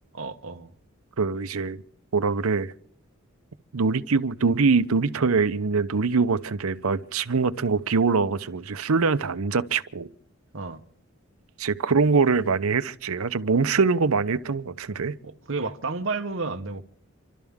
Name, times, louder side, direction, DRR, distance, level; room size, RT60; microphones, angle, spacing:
voice 1, 0.1-0.7 10.5-10.8 15.2-16.8, right 3 dB, 65° right, 1.0 m, -31 dB
voice 2, 1.2-1.8 2.1-2.7 3.7-10.1 11.6-15.1, right 4 dB, 85° right, 0.7 m, -23 dB
28.0 x 12.5 x 3.6 m
head